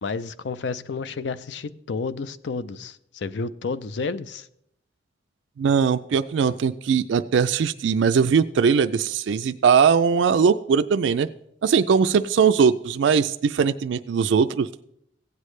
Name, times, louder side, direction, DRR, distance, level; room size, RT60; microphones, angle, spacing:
voice 1, 0.0-4.5, left 4 dB, 65° left, 15 dB, 0.5 m, -31 dB
voice 2, 5.6-11.3 11.6-14.7, right 6 dB, 75° right, 10 dB, 0.3 m, -20 dB
16.0 x 8.2 x 3.2 m, 0.74 s
head